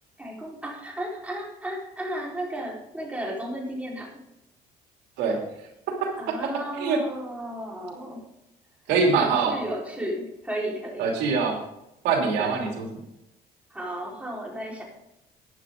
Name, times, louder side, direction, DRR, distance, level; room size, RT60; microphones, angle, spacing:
voice 1, 0.2-4.1 6.2-8.2 9.1-11.1 12.4-12.6 13.7-14.8, right 1 dB, 10° right, -3 dB, 4.2 m, -34 dB
voice 2, 5.9-6.4 6.8-7.0 8.9-9.6 11.0-11.6 12.0-12.9, right 5 dB, 85° right, 1 dB, 2.8 m, -24 dB
14.5 x 9.8 x 3.8 m, 0.86 s
cardioid pair, 110°, 17 cm